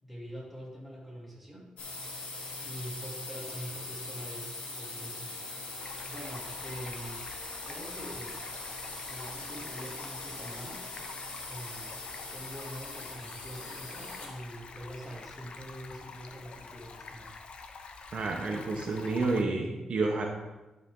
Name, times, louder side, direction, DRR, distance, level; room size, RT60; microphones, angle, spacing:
voice 1, 0.0-1.7 2.6-5.4 6.0-7.2 7.6-8.4 9.1-10.8 11.5-12.0 12.3-17.4, equal, ahead, -4 dB, 2.6 m, -44 dB
sound 1, 1.8-14.5, left 2 dB, 90° left, 1.8 m, -41 dB
Stream, 5.8-19.4, left 4 dB, 60° left, 0.7 m, -47 dB
voice 2, 18.1-20.3, right 3 dB, 55° right, 1 dB, 1.0 m, -30 dB
12.0 x 5.2 x 3.8 m, 1.1 s
wide cardioid pair, 115°, 2 cm